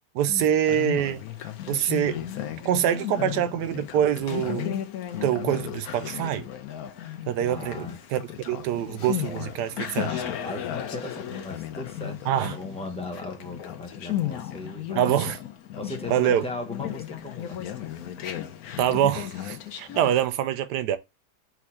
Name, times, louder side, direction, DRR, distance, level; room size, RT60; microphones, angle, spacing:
voice 1, 0.1-1.2 1.7-2.2 2.6-4.8 5.2-6.5 7.3-10.3 12.3-12.5 15.0-15.4 16.1-16.5 18.8-21.0, right 10 dB, 80° right, 1.2 m, -25 dB
Conversation, 0.6-20.3, left 11 dB, 70° left, 1.1 m, -35 dB
voice 2, 7.5-8.0 10.1-12.2 12.4-15.1 15.8-17.6 19.9-20.1, left 2 dB, 10° left, 0.4 m, -37 dB
4.4 x 2.5 x 4.2 m
omnidirectional pair, 1.8 m